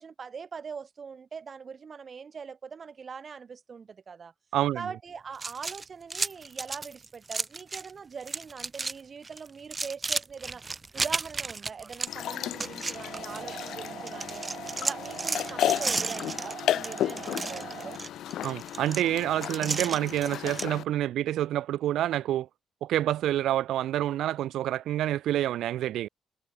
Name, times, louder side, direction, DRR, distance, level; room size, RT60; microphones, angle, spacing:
voice 1, 0.0-4.3 4.7-10.6 10.9-14.4 14.8-18.0, right 6 dB, 45° right, 7.9 m, -42 dB
voice 2, 4.5-4.9 18.4-22.5 22.8-26.1, right 12 dB, 80° right, 2.6 m, -28 dB
sound 1, 5.3-7.9 8.2-9.0 9.2-13.7 14.1-20.7, right 4 dB, 25° right, 2.7 m, -34 dB
sound 2, 12.1-20.8, left 12 dB, 75° left, 2.0 m, -34 dB
sound 3, 12.9-18.0, right 9 dB, 60° right, 7.1 m, -42 dB
cardioid pair, 90°, 0 cm